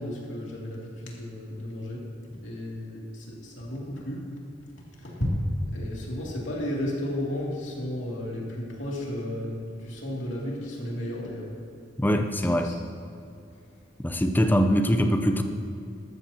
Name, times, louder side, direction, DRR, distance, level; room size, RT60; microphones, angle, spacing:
voice 1, 0.0-2.0 2.4-4.2 4.8-5.4 5.7-11.5 12.4-12.7, left 1 dB, 75° left, -4 dB, 2.6 m, -33 dB
voice 2, 12.0-12.8 14.0-15.4, equal, 10° left, 5 dB, 0.6 m, -23 dB
13.5 x 13.0 x 2.9 m, 2.6 s
head